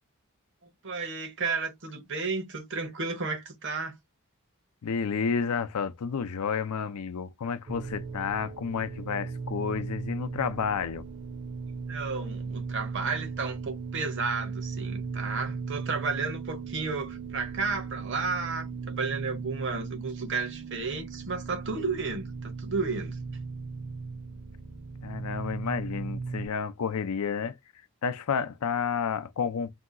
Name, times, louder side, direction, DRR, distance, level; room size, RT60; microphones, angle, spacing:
voice 1, 0.6-4.0 11.9-23.2, right 4 dB, 55° right, 0.8 m, -33 dB
voice 2, 4.8-11.1 25.0-27.6 28.0-29.7, left 6 dB, 85° left, 0.5 m, -30 dB
sound 1, 7.7-26.5, right 4 dB, 25° right, 0.5 m, -37 dB
2.7 x 2.3 x 3.7 m
head